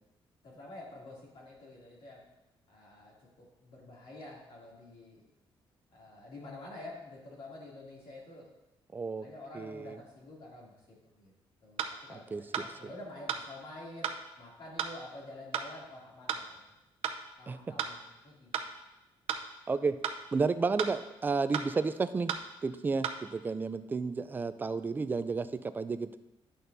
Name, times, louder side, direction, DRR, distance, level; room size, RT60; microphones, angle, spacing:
voice 1, 0.4-2.2 2.7-5.2 5.9-8.5 9.2-11.3 11.6-11.8 12.1-16.6 17.4-18.5, left 2 dB, 65° left, -4 dB, 2.7 m, -48 dB
voice 2, 8.9-9.3 9.5-10.0 12.1-12.6 17.5-17.6 19.7-20.0 20.3-22.3 22.6-26.2, right 4 dB, 20° right, 12 dB, 0.3 m, -32 dB
sound 1, 11.8-12.0 12.5-12.7 13.3-13.5 14.0-14.2 14.8-14.9 15.5-15.7 16.3-16.5 17.0-17.2 17.8-18.0 18.5-18.7 19.3-19.5 20.0-20.2 20.8-20.9 21.5-21.7 22.3-22.5 23.0-23.1, right 8 dB, 80° right, 0.6 m, -33 dB
10.0 x 6.5 x 2.7 m, 0.96 s
cardioid pair, 150°, 10 cm